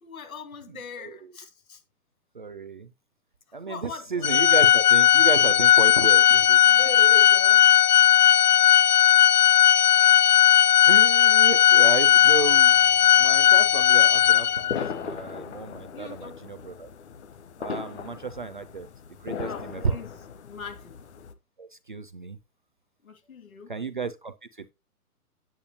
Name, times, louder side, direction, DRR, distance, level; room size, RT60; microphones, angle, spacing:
voice 1, 0.0-1.8 3.6-4.3 6.7-7.7 15.9-16.4 19.4-20.2 20.4-21.0 23.0-23.7, left 3 dB, 65° left, 2.3 m, -40 dB
voice 2, 1.0-1.3 2.3-2.9 3.5-6.8 8.8-8.9 9.8-10.4 10.9-12.8 13.2-16.9 17.6-18.9 19.2-20.0 21.6-22.4 23.7-24.7, right 4 dB, 35° right, 0.4 m, -33 dB
Organ, 4.2-14.9, left 11 dB, 90° left, 0.5 m, -17 dB
sound 1, 12.2-21.3, left 6 dB, 45° left, 1.1 m, -39 dB
8.8 x 8.1 x 2.8 m
hypercardioid pair, 140°, 45 cm